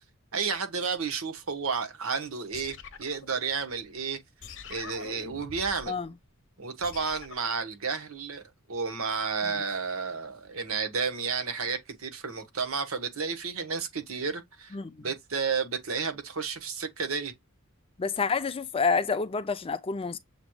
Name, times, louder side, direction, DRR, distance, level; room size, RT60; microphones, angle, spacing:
voice 1, 0.3-4.2 4.7-6.0 6.6-8.4 8.7-17.3, right 5 dB, 75° right, 1.2 m, -32 dB
sound 1, 2.5-3.9 4.4-5.9 6.8-7.5, left 5 dB, 60° left, 0.9 m, -45 dB
voice 2, 14.7-15.1 18.0-20.2, left 5 dB, 25° left, 0.4 m, -28 dB
7.1 x 3.1 x 2.3 m
head